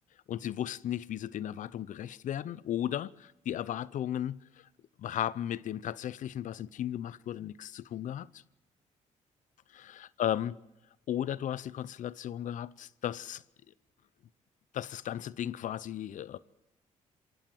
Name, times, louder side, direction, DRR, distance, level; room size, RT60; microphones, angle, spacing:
voice 1, 0.3-4.7 5.0-8.4 9.7-10.6 11.1-13.4 14.7-16.4, left 11 dB, 70° left, 0.7 m, -35 dB
27.0 x 17.0 x 7.8 m
cardioid pair, 70°, 13 cm